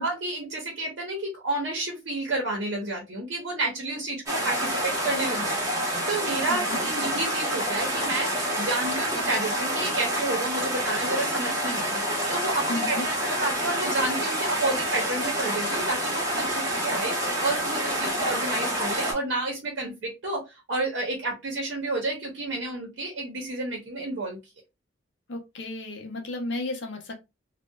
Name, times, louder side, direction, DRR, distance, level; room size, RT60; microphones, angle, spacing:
voice 1, 0.0-12.0 12.3-24.4, right 2 dB, 60° right, -1 dB, 0.6 m, -30 dB
sound 1, 4.3-19.1, equal, 15° right, 0.7 m, -28 dB
voice 2, 6.5-6.8 12.7-13.1 25.3-27.1, left 2 dB, 60° left, 3 dB, 0.6 m, -33 dB
2.6 x 2.1 x 2.2 m, 0.24 s
head